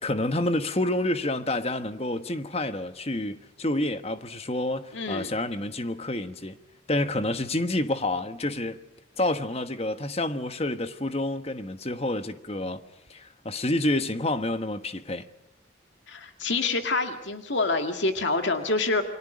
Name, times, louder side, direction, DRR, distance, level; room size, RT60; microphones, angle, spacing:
voice 1, 0.0-6.6 6.9-8.8 9.2-12.8 13.1-15.3, left 1 dB, 30° left, 1.3 m, -28 dB
voice 2, 4.9-5.3 16.1-19.0, left 3 dB, 65° left, 2.2 m, -27 dB
29.5 x 24.0 x 5.2 m
head